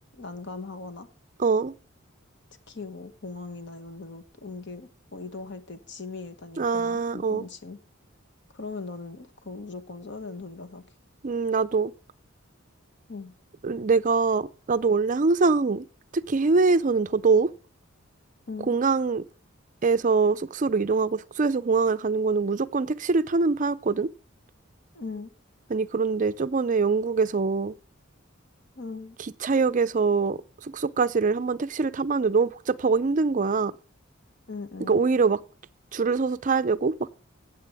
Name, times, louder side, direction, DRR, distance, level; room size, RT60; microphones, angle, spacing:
voice 1, 0.2-1.1 2.7-7.8 8.5-10.8 13.1-13.3 18.5-18.7 24.9-25.3 28.8-29.2 34.5-35.0, left 3 dB, 55° left, 1.2 m, -39 dB
voice 2, 1.4-1.7 6.6-7.4 11.2-11.9 13.6-15.9 16.1-17.5 18.7-19.2 19.8-24.1 25.7-27.7 29.2-33.7 34.9-35.4 35.9-37.1, right 4 dB, 40° right, 0.4 m, -24 dB
16.5 x 7.6 x 3.4 m
head